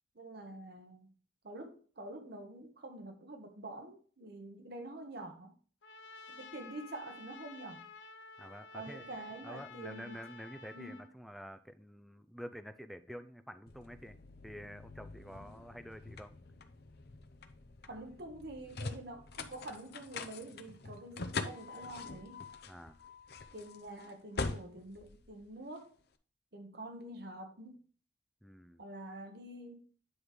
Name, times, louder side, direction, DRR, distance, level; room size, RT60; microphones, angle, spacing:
voice 1, 0.1-1.1 1.4-5.5 6.3-7.9 8.7-10.2 10.7-11.0 17.9-22.5 23.5-26.0 26.5-27.9 28.8-29.9, right 2 dB, 60° right, 1.2 m, -47 dB
Trumpet, 5.8-11.1, left 4 dB, 90° left, 0.9 m, -52 dB
voice 2, 8.4-9.1 9.4-14.2 14.4-16.3 22.7-23.0 28.4-28.8, equal, ahead, 0.4 m, -48 dB
sound 1, 13.7-26.0, left 3 dB, 60° left, 0.7 m, -44 dB
9.5 x 3.2 x 4.9 m
head